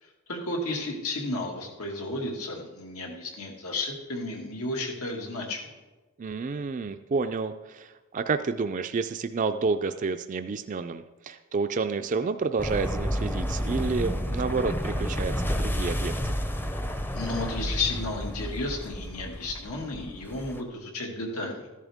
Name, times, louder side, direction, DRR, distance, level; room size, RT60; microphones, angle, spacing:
voice 1, 0.0-5.7 17.1-21.7, left 2 dB, 85° left, 1 dB, 2.1 m, -33 dB
voice 2, 6.2-16.1, right 4 dB, 35° right, 8 dB, 0.4 m, -29 dB
sound 1, 12.6-20.6, equal, 10° left, 0.6 m, -31 dB
14.0 x 11.0 x 3.5 m, 1.2 s
head